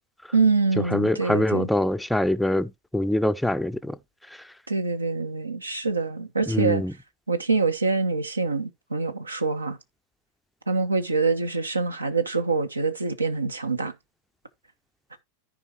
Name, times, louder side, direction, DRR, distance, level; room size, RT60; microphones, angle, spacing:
voice 1, 0.3-1.7 4.7-6.8 7.3-9.8 10.7-13.9, right 4 dB, 80° right, 1.0 m, -25 dB
voice 2, 0.9-4.0 6.5-6.9, left 1 dB, 5° left, 0.5 m, -24 dB
14.0 x 5.1 x 2.9 m
figure-of-eight pair, 90°, 0 cm